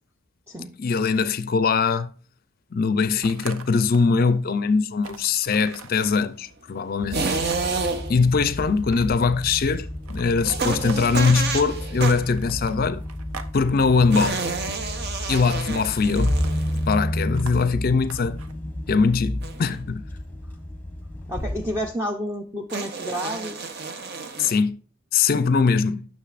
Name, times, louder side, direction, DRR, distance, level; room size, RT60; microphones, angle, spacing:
voice 1, 0.8-2.1 2.7-7.3 8.1-13.0 13.5-14.5 15.3-16.4 16.9-18.5 18.9-20.0 24.4-24.8 25.1-26.1, left 4 dB, 45° left, 0.4 m, -22 dB
sound 1, 3.2-4.2 4.6-4.7 5.0-6.1 7.5-8.0 8.6-9.3 10.0-11.4 12.3-13.5 13.8-14.4 15.4-15.8 16.2-16.7 17.3-18.5, right 4 dB, 85° right, 0.7 m, -42 dB
sound 2, 7.0-21.9, left 1 dB, 10° left, 1.0 m, -31 dB
sound 3, 7.1-8.3 10.4-12.3 14.1-17.0 19.4-19.8 22.7-24.6, right 4 dB, 50° right, 0.8 m, -29 dB
voice 2, 21.3-23.6, equal, 10° right, 0.6 m, -30 dB
9.9 x 6.3 x 2.5 m
head